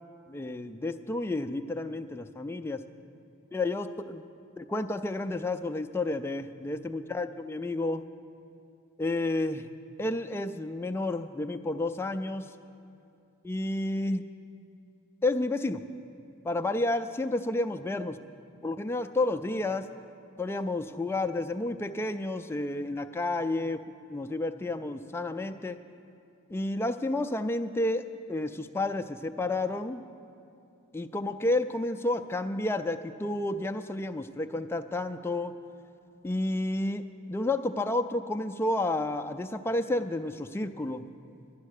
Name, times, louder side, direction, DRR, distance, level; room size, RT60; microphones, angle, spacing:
voice 1, 0.3-2.8 3.5-4.2 4.6-8.1 9.0-9.7 10.0-12.5 13.4-14.2 15.2-15.8 16.4-18.2 18.6-19.9 20.4-23.8 24.1-25.8 26.5-30.0 30.9-35.5 36.2-41.1, left 2 dB, 10° left, 7 dB, 0.3 m, -31 dB
11.0 x 10.5 x 6.5 m, 2.7 s
head